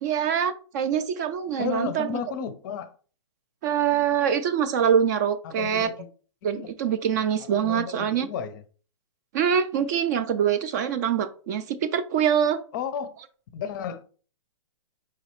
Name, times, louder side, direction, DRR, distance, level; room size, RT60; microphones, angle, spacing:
voice 1, 0.0-2.2 3.6-5.9 6.4-8.3 9.3-12.6, right 8 dB, 35° right, 0.3 m, -24 dB
voice 2, 1.6-3.0 5.4-6.1 6.6-6.7 7.4-8.6 12.7-13.2 13.5-14.0, left 7 dB, 35° left, 0.5 m, -33 dB
4.8 x 3.0 x 3.0 m
hypercardioid pair, 140°, 17 cm